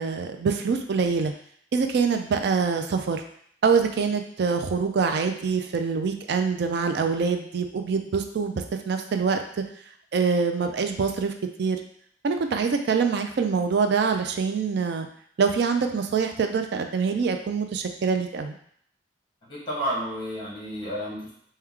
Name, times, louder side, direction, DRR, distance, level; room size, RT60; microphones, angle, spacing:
voice 1, 0.0-1.3 1.7-3.2 3.6-8.5 8.9-9.4 10.1-11.3 11.6-11.8 12.2-15.1 15.4-18.6, right 5 dB, 60° right, 6 dB, 0.4 m, -25 dB
voice 2, 19.5-21.3, equal, 30° left, -5 dB, 1.3 m, -31 dB
4.5 x 2.2 x 3.6 m, 0.64 s
head